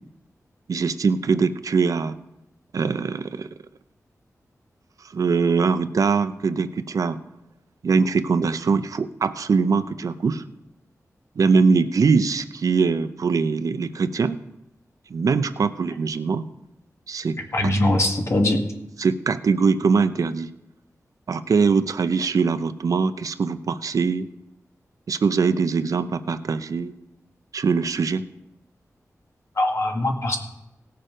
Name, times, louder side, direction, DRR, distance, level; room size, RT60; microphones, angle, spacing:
voice 1, 0.7-2.1 2.7-3.5 5.1-7.2 7.8-10.4 11.4-14.4 15.1-16.5 17.1-17.7 19.0-20.5 21.3-24.3 25.1-26.9 27.5-28.3, right 5 dB, 80° right, 11 dB, 0.7 m, -22 dB
voice 2, 17.5-18.6 29.6-30.4, left 1 dB, 55° left, 2 dB, 1.9 m, -21 dB
17.5 x 6.7 x 5.1 m, 0.89 s
wide cardioid pair, 80°, 6 cm